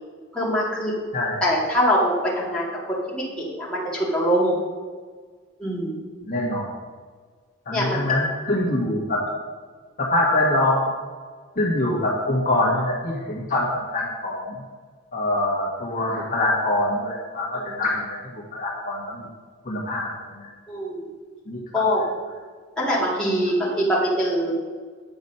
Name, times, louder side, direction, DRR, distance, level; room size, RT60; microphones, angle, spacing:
voice 1, 0.3-0.9 1.4-2.7 3.1-4.5 5.6-5.9 7.7-8.0 20.7-21.0 21.7-22.0 22.8-24.5, equal, 5° left, -7 dB, 2.4 m, -23 dB
voice 2, 6.3-6.7 7.7-9.2 10.0-10.9 11.6-14.4 15.1-19.3 19.6-20.5 21.5-21.6, left 1 dB, 45° left, -3 dB, 1.4 m, -24 dB
9.4 x 6.0 x 5.5 m, 1.5 s
head